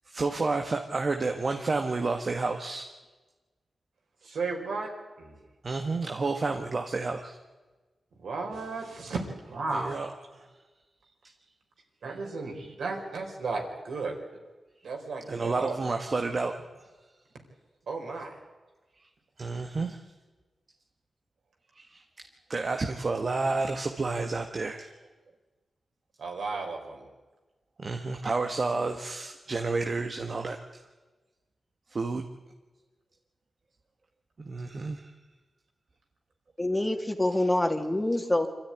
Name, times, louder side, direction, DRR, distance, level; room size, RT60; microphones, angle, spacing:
voice 1, 0.1-2.9 5.6-7.4 9.7-10.1 15.3-16.5 19.4-20.0 21.8-22.0 22.5-24.9 27.8-30.6 31.9-32.3 34.4-35.1, right 3 dB, 45° right, 4 dB, 1.4 m, -30 dB
voice 2, 4.2-4.9 5.2-5.4 8.2-10.0 12.0-14.2 14.8-15.8 17.9-18.4 26.2-27.1, right 3 dB, 80° right, 2 dB, 4.5 m, -34 dB
voice 3, 36.6-38.5, left 1 dB, 15° left, 4 dB, 2.2 m, -26 dB
25.5 x 13.5 x 9.8 m, 1.2 s
cardioid pair, 85°, 0 cm